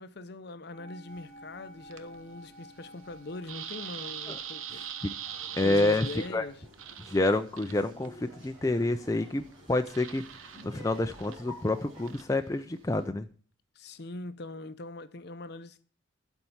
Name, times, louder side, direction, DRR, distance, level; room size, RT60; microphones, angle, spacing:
voice 1, 0.0-4.9 5.6-6.6 13.8-15.8, left 2 dB, 55° left, 0.6 m, -42 dB
sound 1, 0.7-6.5, equal, 5° right, 2.0 m, -52 dB
MD noise, 1.1-13.1, right 9 dB, 80° right, 0.8 m, -44 dB
Laughter, 5.2-12.1, left 1 dB, 25° right, 5.9 m, -52 dB
voice 2, 5.6-6.1 6.3-6.4 7.1-9.4 9.7-10.2 10.6-13.3, left 2 dB, 15° left, 0.4 m, -28 dB
12.0 x 4.5 x 7.1 m
head